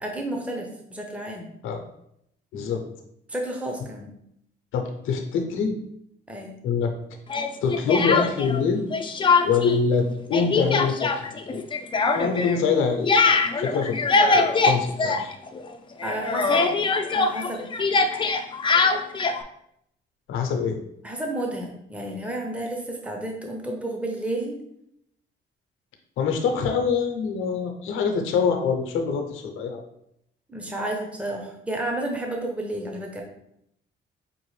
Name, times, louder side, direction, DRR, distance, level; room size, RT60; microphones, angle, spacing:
voice 1, 0.0-1.5 3.3-4.1 6.3-6.5 16.0-16.7 17.1-17.6 21.0-24.6 30.5-33.2, right 1 dB, 5° right, 1 dB, 0.7 m, -31 dB
voice 2, 2.5-2.8 4.7-5.7 6.6-6.9 7.6-8.9 9.4-11.6 12.1-14.0 14.3-15.3 20.3-20.8 26.2-29.8, left 5 dB, 90° left, 4 dB, 0.7 m, -25 dB
Speech, 7.3-8.6 8.9-9.8 10.0-15.7 16.0-19.4, left 4 dB, 25° left, 0.4 m, -22 dB
5.3 x 2.5 x 3.1 m, 0.75 s
cardioid pair, 90°, 20 cm